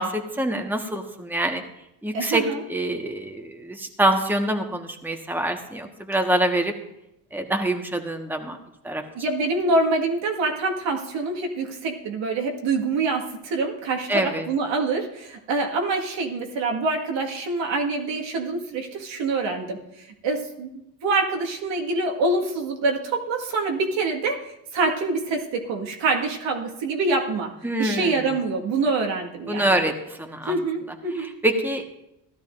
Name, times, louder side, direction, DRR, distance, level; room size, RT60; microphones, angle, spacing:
voice 1, 0.0-1.6 2.0-2.4 2.7-6.7 7.3-8.6 8.8-9.0 14.1-14.5 27.6-28.3 29.5-30.6 31.2-31.8, right 1 dB, 5° right, 4 dB, 1.5 m, -25 dB
voice 2, 2.1-2.6 9.1-27.5 27.8-29.8 30.5-31.3, right 3 dB, 65° right, 1 dB, 2.0 m, -26 dB
16.0 x 12.0 x 2.7 m, 0.84 s
hypercardioid pair, 60°, 49 cm